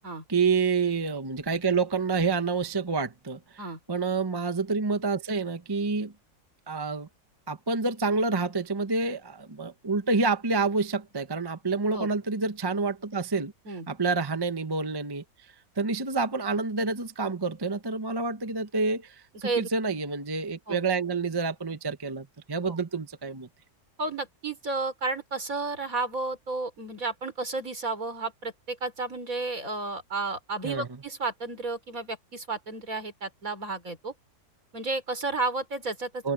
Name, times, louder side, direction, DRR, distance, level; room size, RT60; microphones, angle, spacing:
voice 1, 0.3-3.4 3.9-6.1 6.7-7.1 7.5-13.5 13.9-15.2 15.8-23.5 30.6-30.9 36.2-36.3, right 4 dB, 20° right, 0.8 m, -28 dB
voice 2, 24.0-34.1 34.7-36.3, right 3 dB, 60° right, 4.4 m, -32 dB
open air
omnidirectional pair, 1.6 m